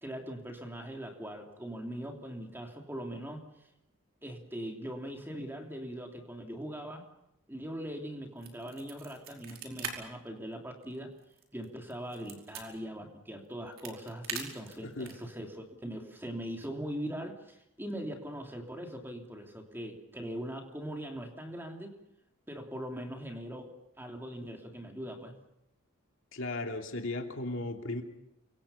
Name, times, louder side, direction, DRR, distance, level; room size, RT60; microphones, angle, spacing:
voice 1, 0.0-3.5 4.2-7.0 7.5-11.1 11.5-21.9 22.5-23.7 24.0-25.4, equal, 10° right, 2 dB, 3.1 m, -41 dB
sound 1, 8.4-9.9 10.3-10.4 10.8-12.6 13.4-15.3, right 6 dB, 60° right, 5.0 m, -41 dB
voice 2, 26.3-28.0, left 2 dB, 60° left, 3 dB, 2.8 m, -36 dB
29.5 x 25.0 x 5.8 m, 0.85 s
head